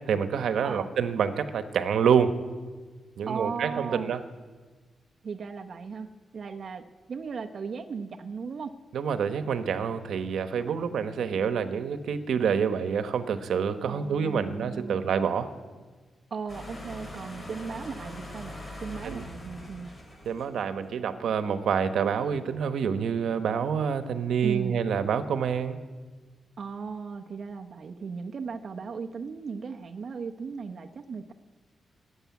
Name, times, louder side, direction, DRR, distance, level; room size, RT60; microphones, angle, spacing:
voice 1, 0.1-2.3 3.2-4.2 8.9-15.5 19.0-19.2 20.2-25.8, right 7 dB, 85° right, 9 dB, 1.0 m, -27 dB
voice 2, 3.3-4.1 5.2-6.8 7.1-8.7 13.8-15.3 16.3-19.9 24.4-24.8 26.6-31.3, right 5 dB, 45° right, 4 dB, 0.8 m, -36 dB
sound 1, 16.5-20.7, left 1 dB, 20° left, 4.6 m, -42 dB
19.0 x 8.0 x 9.4 m, 1.4 s
wide cardioid pair, 160°, 0 cm